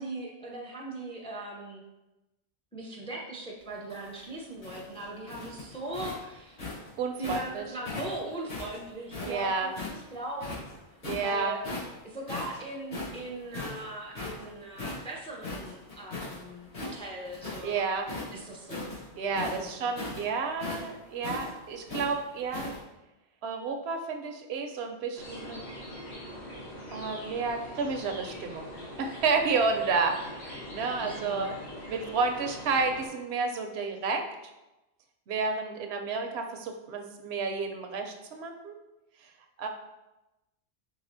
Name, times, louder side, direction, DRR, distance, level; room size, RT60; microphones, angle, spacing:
voice 1, 0.0-1.8 2.7-6.6 7.2-10.7 11.2-11.6 12.0-17.8 18.3-18.9 19.3-19.9 31.0-31.6 31.8-32.1, right 2 dB, 10° left, -2 dB, 0.4 m, -39 dB
sound 1, 3.7-7.5 7.9-10.0 10.4-11.3 11.6-12.0 12.3-16.4 16.7-17.7 18.0-22.8, left 3 dB, 70° left, 1.9 m, -38 dB
voice 2, 7.0-7.7 9.2-9.7 11.0-11.6 17.6-18.1 19.2-22.7 23.4-25.6 26.9-31.6 31.9-34.3 35.3-38.8 39.6-39.7, right 4 dB, 80° right, 4 dB, 0.8 m, -31 dB
sound 2, 25.2-33.1, equal, 85° left, 1.3 m, -42 dB
4.8 x 3.6 x 2.6 m, 1.0 s
omnidirectional pair, 1.1 m